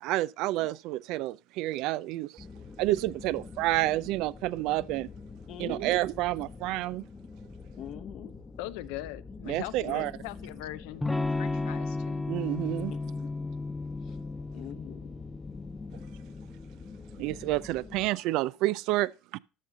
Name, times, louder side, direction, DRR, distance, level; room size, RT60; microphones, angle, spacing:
voice 1, 0.0-2.5 2.8-5.1 5.6-7.0 9.5-10.1 12.3-12.9 17.2-19.4, right 17 dB, 70° right, 0.3 m, -29 dB
sound 1, 2.4-18.1, left 4 dB, 25° left, 0.9 m, -46 dB
voice 2, 5.5-6.0 7.8-8.4 9.9-10.1 13.0-13.4 14.0-14.2 14.5-15.2, left 10 dB, 55° left, 0.9 m, -43 dB
voice 3, 8.6-12.2, left 16 dB, 85° left, 0.5 m, -41 dB
Electric guitar / Strum, 11.0-16.7, left 3 dB, 10° left, 0.5 m, -34 dB
12.5 x 5.7 x 3.8 m
supercardioid pair, 105°, 0 cm